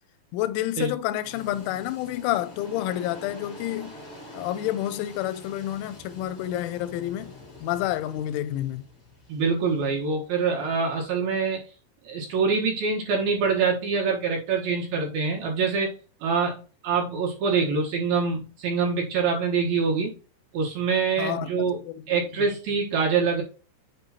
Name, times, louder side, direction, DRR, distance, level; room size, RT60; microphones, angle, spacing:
voice 1, 0.3-4.0 4.3-7.4 7.6-8.8 21.2-22.5, left 13 dB, 85° left, 3.0 m, -29 dB
sound 1, 1.2-11.1, left 2 dB, 35° left, 3.0 m, -46 dB
voice 2, 9.3-11.6 12.0-16.0 16.2-20.2 20.5-21.8 22.1-23.4, right 5 dB, 65° right, 2.6 m, -25 dB
7.8 x 5.4 x 2.8 m
omnidirectional pair, 5.4 m